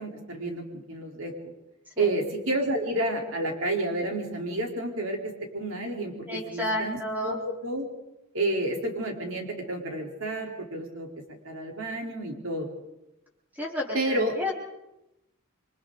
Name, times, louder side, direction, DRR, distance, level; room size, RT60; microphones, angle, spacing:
voice 1, 0.0-1.5 2.0-5.2 5.5-7.9 8.3-11.1 11.4-12.7 13.9-14.3, right 1 dB, 90° right, 0 dB, 4.2 m, -30 dB
voice 2, 6.3-7.4 13.5-14.5, left 1 dB, 10° right, -3 dB, 4.3 m, -31 dB
28.5 x 24.0 x 4.1 m, 0.92 s
head